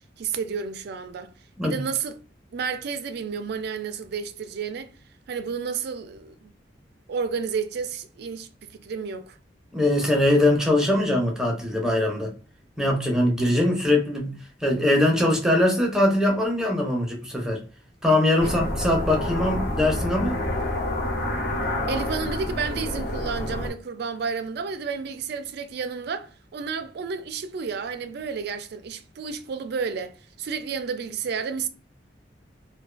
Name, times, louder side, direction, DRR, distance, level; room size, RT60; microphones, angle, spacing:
voice 1, 0.2-1.3 1.6-2.2 2.5-4.9 5.3-6.5 7.1-8.5 8.8-9.4 18.4-18.5 21.9-31.7, right 5 dB, 65° right, 0.3 m, -31 dB
voice 2, 9.7-12.3 12.8-14.3 14.6-17.6 18.0-20.4, left 1 dB, 5° right, 0.6 m, -22 dB
sound 1, 18.4-23.7, left 1 dB, 60° left, 0.7 m, -28 dB
2.4 x 2.2 x 2.3 m
head